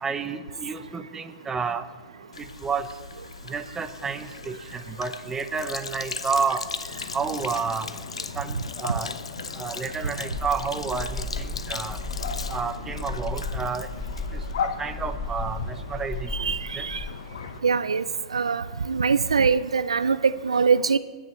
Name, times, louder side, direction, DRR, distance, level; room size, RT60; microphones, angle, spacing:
voice 1, 0.0-1.9 2.6-2.9 3.5-6.6 7.1-7.9 8.4-9.1 9.6-12.0 12.5-13.9 14.6-16.3 16.8-16.9, right 5 dB, 15° right, 9 dB, 0.9 m, -30 dB
Sink (filling or washing), 2.3-14.7, left 5 dB, 85° left, 0.6 m, -38 dB
sound 1, 6.9-17.6, left 7 dB, 70° left, 1.0 m, -38 dB
sound 2, 10.3-17.1, left 2 dB, 5° left, 0.9 m, -34 dB
voice 2, 16.3-17.0 17.6-18.0 18.3-21.0, right 5 dB, 85° right, 15 dB, 0.4 m, -23 dB
29.5 x 10.0 x 3.2 m, 1.4 s
hypercardioid pair, 110°, 3 cm